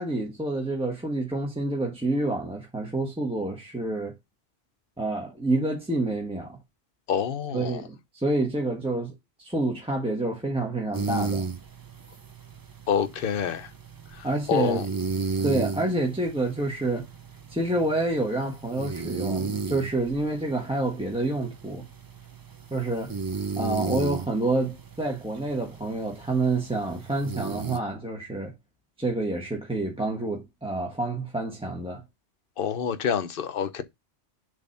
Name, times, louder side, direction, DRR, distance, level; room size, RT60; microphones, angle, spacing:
voice 1, 0.0-4.1 5.0-6.6 7.5-9.1 9.4-11.5 14.2-14.8 15.4-17.0 17.5-21.8 22.7-23.1 23.6-28.5 29.0-32.0, right 2 dB, 5° right, 1.2 m, -28 dB
voice 2, 7.1-7.8 12.9-13.7 14.1-14.9 32.6-33.8, left 7 dB, 55° left, 0.9 m, -27 dB
sound 1, 10.9-27.8, right 4 dB, 30° right, 0.4 m, -34 dB
7.1 x 3.3 x 5.5 m
omnidirectional pair, 1.2 m